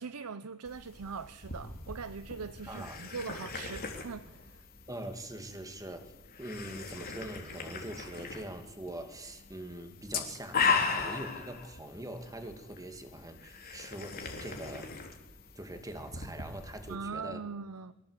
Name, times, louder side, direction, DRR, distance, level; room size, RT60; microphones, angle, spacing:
voice 1, 0.0-4.6 16.9-17.9, right 5 dB, 85° right, 0.7 m, -41 dB
sound 1, 0.6-16.9, left 5 dB, 45° left, 3.5 m, -38 dB
voice 2, 2.7-3.0 4.9-6.1 6.4-14.9 15.5-17.4, right 1 dB, 15° right, 2.4 m, -43 dB
23.5 x 16.0 x 8.2 m
head